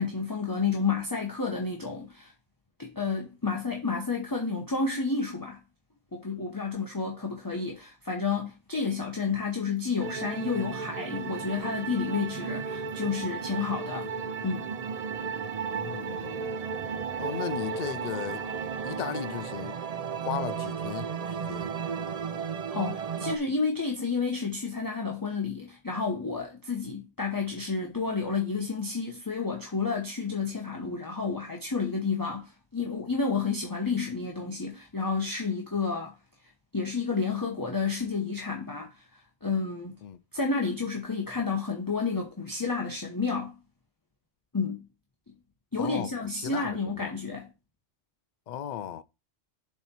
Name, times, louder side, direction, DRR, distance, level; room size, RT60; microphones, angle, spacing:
voice 1, 0.0-2.3 2.8-5.6 6.1-14.1 14.4-14.7 22.7-36.2 36.7-40.0 40.3-43.5 44.5-44.8 45.7-47.5, left 4 dB, 20° left, 0.9 m, -30 dB
sound 1, 10.0-23.4, right 6 dB, 50° right, 0.4 m, -34 dB
voice 2, 15.7-16.4 17.2-18.5 18.8-19.8 20.2-21.7 40.0-40.2 45.8-47.1 48.5-49.0, left 9 dB, 55° left, 0.5 m, -36 dB
7.2 x 4.3 x 4.3 m
omnidirectional pair, 1.3 m